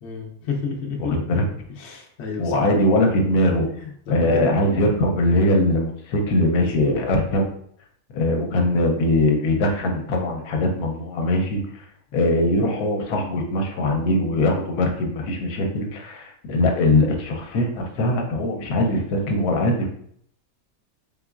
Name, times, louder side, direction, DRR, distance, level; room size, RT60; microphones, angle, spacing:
voice 1, 0.0-1.4 1.8-2.6 3.8-4.5 6.6-6.9, left 5 dB, 55° left, 1 dB, 0.9 m, -31 dB
voice 2, 1.0-1.4 2.4-3.7 4.1-7.5 8.1-11.8 12.1-19.9, left 1 dB, 80° left, 2 dB, 1.2 m, -21 dB
4.0 x 3.6 x 2.4 m, 0.65 s
omnidirectional pair, 1.6 m